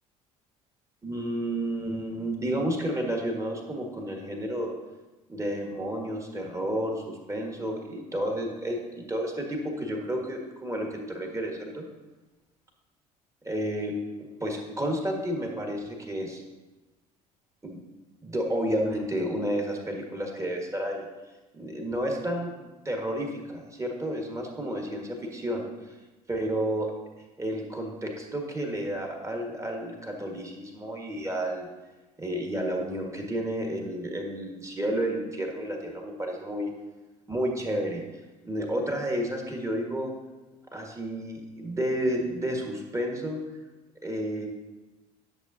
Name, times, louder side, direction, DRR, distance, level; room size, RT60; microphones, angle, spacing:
voice 1, 1.0-4.8 5.3-11.8 13.4-13.9 14.2-16.4 17.6-17.8 18.2-21.1 21.5-25.9 26.3-26.9 27.4-31.7 32.2-36.7 37.3-38.0 38.4-40.1 40.7-43.4 44.0-44.5, right 1 dB, 15° right, 1 dB, 1.7 m, -31 dB
11.0 x 6.5 x 2.8 m, 1.1 s
figure-of-eight pair, 60°, 20 cm